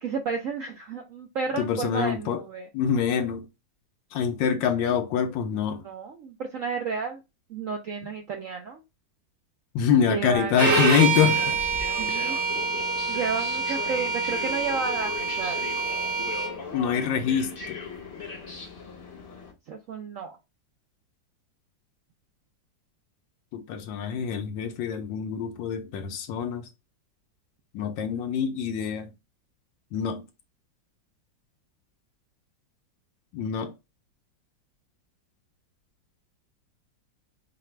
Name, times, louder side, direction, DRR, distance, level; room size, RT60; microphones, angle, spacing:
voice 1, 0.0-2.7 5.7-7.2 7.5-8.8 10.1-11.1 12.0-12.4 13.1-15.7 19.7-20.4, right 5 dB, 75° right, 0.7 m, -32 dB
voice 2, 1.6-2.4 2.7-3.5 4.1-5.9 9.7-11.5 16.7-17.8 23.5-26.7 27.7-29.1 29.9-30.2 33.3-33.7, left 7 dB, 80° left, 1.3 m, -25 dB
Bowed string instrument, 10.5-16.5, right 4 dB, 90° right, 1.7 m, -26 dB
sound 1, 10.9-19.5, left 4 dB, 45° left, 0.8 m, -38 dB
4.8 x 2.2 x 3.1 m
omnidirectional pair, 2.0 m